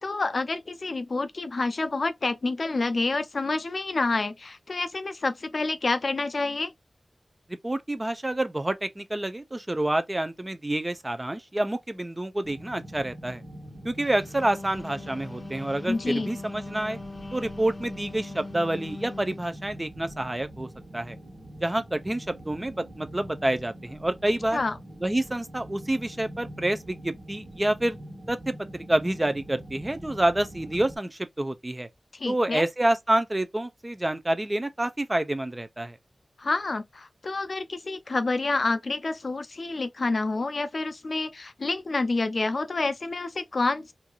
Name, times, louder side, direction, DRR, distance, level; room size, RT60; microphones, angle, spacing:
voice 1, 0.0-6.7 15.9-16.3 24.5-24.7 32.1-32.6 36.4-43.9, left 3 dB, 55° left, 0.5 m, -28 dB
voice 2, 7.6-13.4 13.8-17.0 17.3-20.7 20.9-21.2 21.6-24.6 25.0-28.0 28.3-31.9 32.3-36.0, right 1 dB, 20° right, 0.6 m, -28 dB
sound 1, 12.4-31.0, right 1 dB, 70° right, 1.7 m, -44 dB
Wind instrument woodwind instrument, 14.2-19.5, left 3 dB, 25° left, 0.8 m, -41 dB
4.4 x 2.7 x 2.3 m
wide cardioid pair, 105°, 0 cm